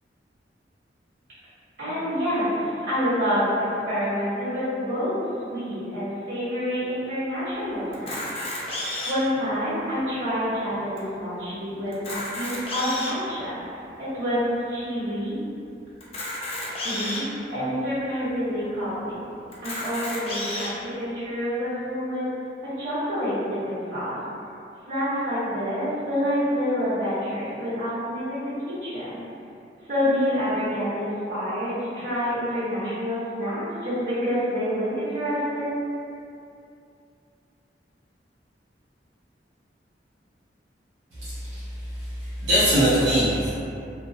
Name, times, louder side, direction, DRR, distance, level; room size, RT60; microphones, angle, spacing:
voice 1, 1.8-5.1 5.4-8.4 8.8-13.6 14.0-14.4 14.7-15.4 16.8-17.2 17.5-19.3 19.6-22.3 22.8-24.1 24.8-29.2 29.9-35.8, equal, 55° right, -13 dB, 1.3 m, -27 dB
Camera, 7.9-9.3 10.0-10.1 10.3-10.4 11.0-11.1 11.9-13.2 13.9-14.0 16.0-17.2 18.0-18.1 18.3-18.4 19.5-20.7, left 1 dB, 35° left, 0.4 m, -31 dB
voice 2, 41.2-41.7 41.9-43.5, equal, 80° right, -13 dB, 0.6 m, -22 dB
2.4 x 2.0 x 2.7 m, 2.6 s
head